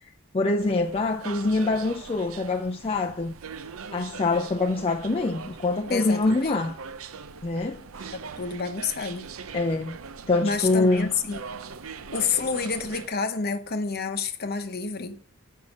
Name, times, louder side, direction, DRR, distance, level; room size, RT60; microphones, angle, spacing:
voice 1, 0.3-3.3 3.9-6.8 7.4-7.8 9.5-10.0 10.3-11.1, left 2 dB, 25° left, 0.5 m, -25 dB
sound 1, 0.6-13.1, right 5 dB, 70° right, 0.6 m, -41 dB
voice 2, 5.9-6.6 8.1-9.3 10.4-11.4 12.1-15.2, left 5 dB, 45° left, 0.9 m, -29 dB
7.1 x 5.5 x 6.4 m
head